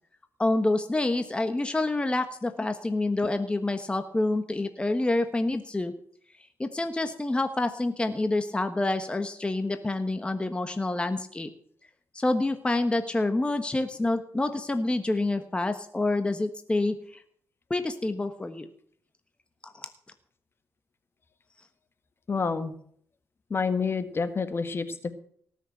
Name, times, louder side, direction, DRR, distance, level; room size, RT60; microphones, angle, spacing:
voice 1, 0.4-5.9 6.6-11.5 12.1-17.2 17.7-18.7 19.8-19.9, left 2 dB, 15° left, 8 dB, 1.3 m, -27 dB
voice 2, 22.3-22.7 23.5-25.1, left 5 dB, 40° left, 10 dB, 1.7 m, -28 dB
18.5 x 6.6 x 7.9 m, 0.62 s
cardioid pair, 70°, 6 cm